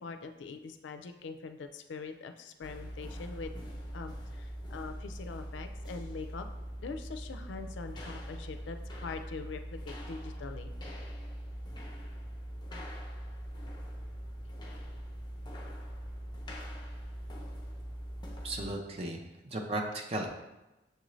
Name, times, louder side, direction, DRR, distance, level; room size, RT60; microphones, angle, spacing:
voice 1, 0.0-3.5 3.9-6.5 6.8-10.7, left 4 dB, 75° left, 8 dB, 0.4 m, -43 dB
sound 1, 2.6-18.7, equal, 25° left, 0.6 m, -42 dB
voice 2, 18.4-20.3, right 2 dB, 35° right, 1 dB, 0.6 m, -36 dB
6.6 x 2.5 x 3.1 m, 0.98 s
head